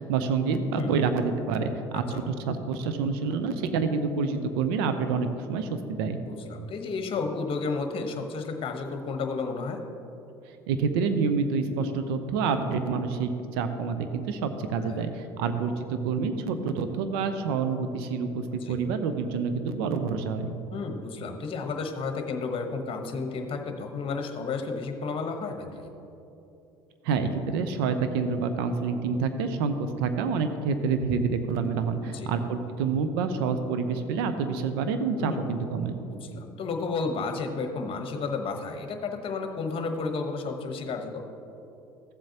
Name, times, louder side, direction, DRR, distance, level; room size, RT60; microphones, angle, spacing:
voice 1, 0.0-6.2 10.7-20.6 27.0-36.0, right 5 dB, 75° right, 9 dB, 0.7 m, -28 dB
voice 2, 6.2-9.8 14.8-15.0 18.5-18.8 20.7-25.9 32.0-32.3 35.2-35.4 36.0-41.2, left 4 dB, 45° left, 5 dB, 1.1 m, -32 dB
14.0 x 7.5 x 2.9 m, 2.9 s
hypercardioid pair, 65°, 13 cm